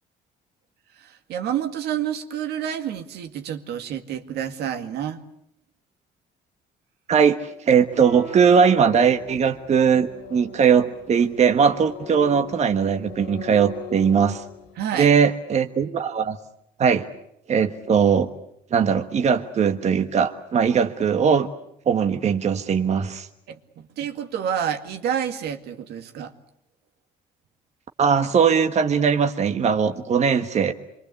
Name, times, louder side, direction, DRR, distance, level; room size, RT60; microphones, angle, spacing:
voice 1, 1.0-5.2 14.8-15.1 23.5-26.3, right 9 dB, 75° right, 7 dB, 2.1 m, -29 dB
voice 2, 7.1-14.4 15.0-16.4 16.8-17.1 17.5-18.3 18.7-21.5 21.9-23.3 28.0-30.7, right 6 dB, 40° right, 6 dB, 1.4 m, -20 dB
sound 1, 7.8-14.8, left 5 dB, 85° left, 3.8 m, -40 dB
26.5 x 23.5 x 8.4 m, 0.76 s
cardioid pair, 110°, 17 cm